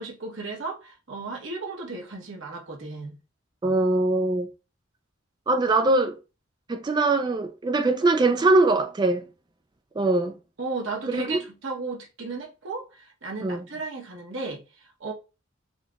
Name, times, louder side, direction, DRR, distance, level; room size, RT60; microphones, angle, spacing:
voice 1, 0.0-3.2 10.6-15.1, right 3 dB, 65° right, 1.1 m, -35 dB
voice 2, 3.6-4.5 5.5-6.2 6.7-9.3 10.0-10.4 11.1-11.4 13.4-13.7, right 2 dB, 20° right, 0.3 m, -22 dB
4.3 x 2.8 x 2.4 m
head